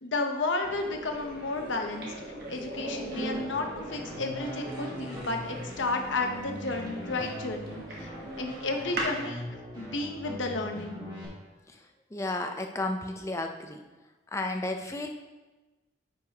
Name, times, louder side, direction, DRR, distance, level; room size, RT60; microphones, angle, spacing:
voice 1, 0.0-2.1 2.5-8.1 8.4-9.4 9.8-11.0, left 3 dB, 75° left, 3 dB, 0.9 m, -32 dB
sound 1, 0.6-9.2, right 1 dB, 50° right, 1.2 m, -40 dB
sound 2, 3.1-11.3, equal, 25° right, 2.0 m, -40 dB
voice 2, 12.1-13.8 14.3-15.1, left 2 dB, 15° left, 4 dB, 0.5 m, -32 dB
9.1 x 5.5 x 2.9 m, 1.2 s
head